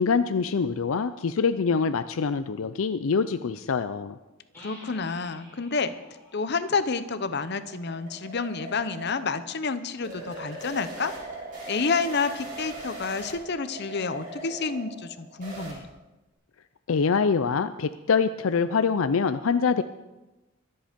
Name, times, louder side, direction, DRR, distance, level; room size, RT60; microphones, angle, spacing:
voice 1, 0.0-4.2 16.9-19.8, left 5 dB, 80° left, 11 dB, 0.5 m, -24 dB
sound 1, 4.5-8.2, left 1 dB, 10° left, 5.9 m, -51 dB
voice 2, 4.6-11.1 11.7-15.9, left 4 dB, 55° left, 12 dB, 0.8 m, -29 dB
sound 2, 6.8-15.7, right 2 dB, 40° right, 5.3 m, -40 dB
23.5 x 8.0 x 5.2 m, 1.1 s
head